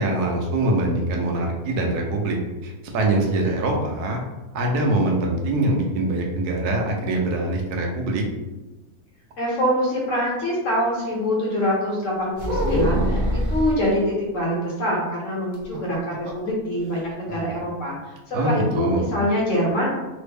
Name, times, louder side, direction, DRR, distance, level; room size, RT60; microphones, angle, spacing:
voice 1, 0.0-2.4 2.6-4.2 4.5-8.2 18.3-19.0, right 2 dB, 90° right, 0 dB, 1.2 m, -23 dB
voice 2, 9.4-19.9, equal, 60° left, -4 dB, 1.2 m, -24 dB
sound 1, 12.4-13.8 15.5-16.5 16.8-16.9 17.3-17.5, equal, 55° right, 0.5 m, -24 dB
3.3 x 2.1 x 3.3 m, 1.1 s
omnidirectional pair, 1.6 m